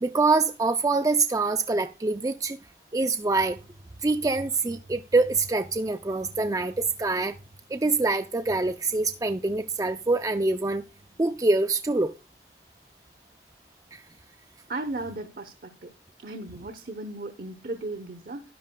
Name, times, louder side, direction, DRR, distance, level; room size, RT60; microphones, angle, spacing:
voice 1, 0.0-2.6 2.9-3.6 4.0-7.3 7.7-10.8 11.2-12.1 13.9-14.0, right 3 dB, 20° right, 0.4 m, -25 dB
voice 2, 14.7-15.9 16.2-18.4, right 2 dB, 55° right, 0.9 m, -36 dB
13.0 x 11.0 x 2.2 m
head